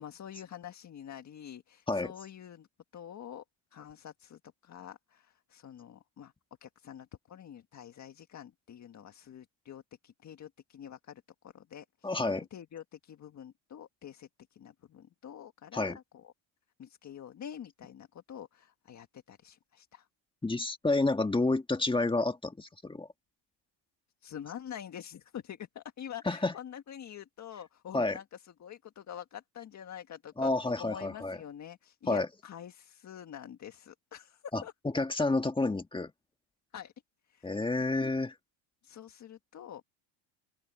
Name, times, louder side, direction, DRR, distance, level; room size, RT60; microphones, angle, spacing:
voice 1, 0.0-2.7 2.9-3.4 3.7-6.3 6.6-12.2 12.5-16.3 16.8-20.1 24.2-30.5 30.8-34.7 36.7-36.9 37.3-37.5 38.8-39.8, left 9 dB, 35° left, 1.7 m, -47 dB
voice 2, 12.0-12.5 15.7-16.0 20.4-23.1 26.3-26.5 27.9-28.2 30.4-31.4 32.1-32.3 34.5-36.1 37.4-38.4, left 2 dB, 10° left, 1.7 m, -30 dB
open air
cardioid pair, 125°, 50 cm